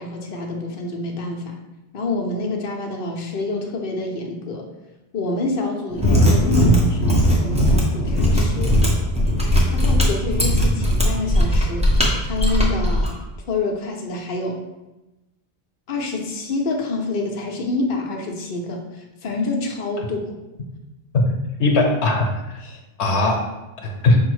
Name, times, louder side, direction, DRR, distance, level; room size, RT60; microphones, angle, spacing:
voice 1, 0.0-1.6 1.9-4.7 5.1-8.8 9.7-11.9 12.2-13.1 13.5-14.6 15.9-20.4 22.6-22.8, left 2 dB, 60° left, 1 dB, 0.8 m, -27 dB
Mechanisms, 5.9-13.1, equal, 5° right, 0.8 m, -18 dB
voice 2, 21.6-22.6 23.0-23.4 23.8-24.2, left 2 dB, 90° left, 2 dB, 1.0 m, -19 dB
5.3 x 2.0 x 4.6 m, 1.0 s
omnidirectional pair, 1.1 m